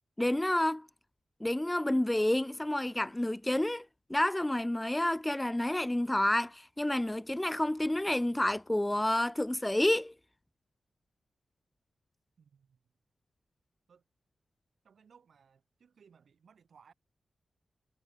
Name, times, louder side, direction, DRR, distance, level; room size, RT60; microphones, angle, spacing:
voice 1, 0.2-0.9 1.4-10.1, left 1 dB, 10° left, 0.3 m, -29 dB
voice 2, 12.4-12.8 13.9-14.0 14.8-16.9, right 6 dB, 70° right, 7.6 m, -62 dB
wide cardioid pair, 110°, 0 cm